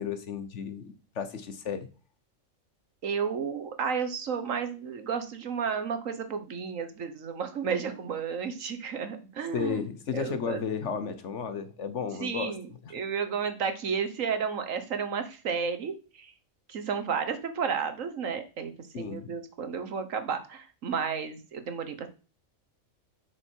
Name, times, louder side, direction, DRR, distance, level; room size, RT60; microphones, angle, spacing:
voice 1, 0.0-1.9 9.5-12.5 18.9-19.3, left 6 dB, 60° left, 10 dB, 1.3 m, -33 dB
voice 2, 3.0-9.9 10.1-10.6 12.2-16.3 16.7-22.2, right 6 dB, 70° right, 8 dB, 1.6 m, -32 dB
9.0 x 6.4 x 4.6 m, 0.34 s
omnidirectional pair, 1.4 m